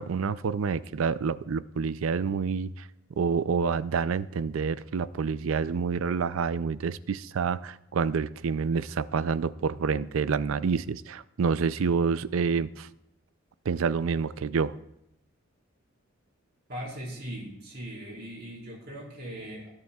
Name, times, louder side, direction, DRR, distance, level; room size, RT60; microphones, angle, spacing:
voice 1, 0.0-2.9 3.2-12.9 13.7-14.7, right 5 dB, 85° right, 16 dB, 0.4 m, -28 dB
voice 2, 16.7-19.7, equal, 50° right, -3 dB, 4.4 m, -39 dB
19.0 x 9.7 x 2.3 m, 0.83 s
head